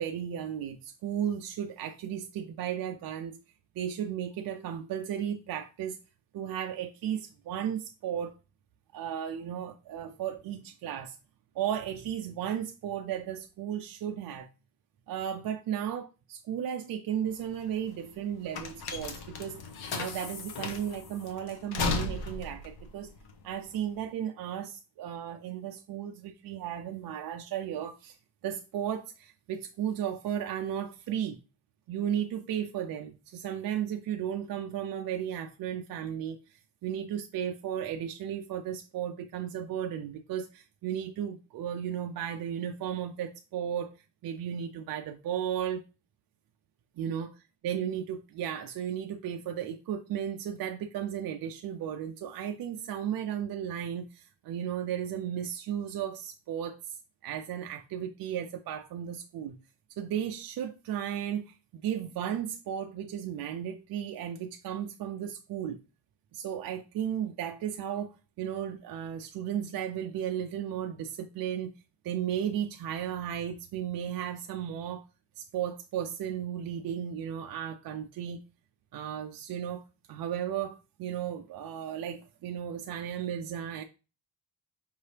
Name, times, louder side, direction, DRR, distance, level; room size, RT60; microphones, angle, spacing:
voice 1, 0.0-3.4 3.8-6.0 6.3-8.3 8.9-11.2 11.5-14.5 15.1-19.6 19.9-23.1 23.4-28.2 28.4-31.4 31.9-43.9 44.2-45.8 47.0-47.3 47.6-56.9 57.2-59.6 60.0-65.8 66.3-71.7 72.0-75.0 75.4-78.4 78.9-79.8 80.1-83.8, right 9 dB, 55° right, 0.4 m, -35 dB
sound 1, 17.3-24.1, left 4 dB, 55° left, 0.8 m, -36 dB
5.3 x 2.8 x 3.2 m
cardioid pair, 165°, 45 cm